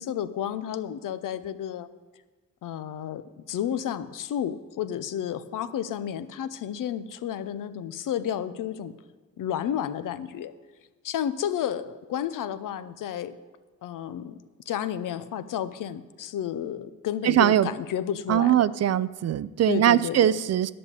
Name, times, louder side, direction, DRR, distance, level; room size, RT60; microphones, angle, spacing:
voice 1, 0.0-1.9 2.6-8.9 9.4-10.5 11.0-13.3 13.8-18.7 19.7-20.4, left 10 dB, 80° left, 13 dB, 0.6 m, -31 dB
voice 2, 17.2-17.7 18.3-20.7, right 11 dB, 55° right, 17 dB, 0.4 m, -21 dB
11.0 x 5.5 x 8.2 m, 1.3 s
cardioid pair, 80°, 31 cm